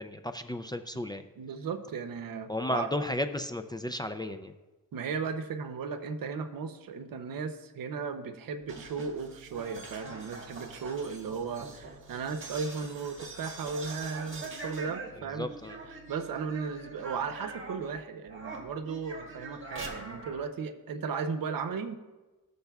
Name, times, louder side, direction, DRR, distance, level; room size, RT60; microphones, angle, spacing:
voice 1, 0.0-1.2 2.5-4.5 15.2-15.8, left 1 dB, 15° left, 7 dB, 0.3 m, -34 dB
voice 2, 1.4-2.9 4.9-15.5 16.1-22.0, right 5 dB, 75° right, 8 dB, 0.8 m, -36 dB
sound 1, 8.6-18.0 18.3-20.4, right 3 dB, 35° right, 1.5 m, -44 dB
14.5 x 6.6 x 2.3 m, 1.2 s
cardioid pair, 100°, 34 cm